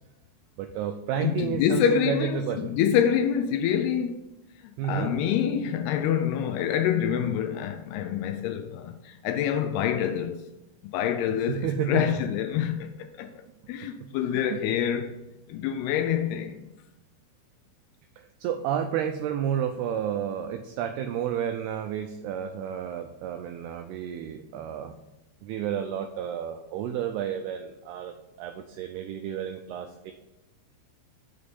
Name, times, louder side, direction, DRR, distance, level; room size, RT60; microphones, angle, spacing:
voice 1, 0.6-2.7 4.8-5.2 11.5-12.2 14.0-14.6 18.2-24.9 25.4-30.1, right 8 dB, 85° right, 2.3 m, -31 dB
voice 2, 1.2-4.2 4.6-10.4 10.9-15.2 15.5-16.7, left 9 dB, 85° left, 2.3 m, -26 dB
7.0 x 6.5 x 5.3 m
omnidirectional pair, 5.1 m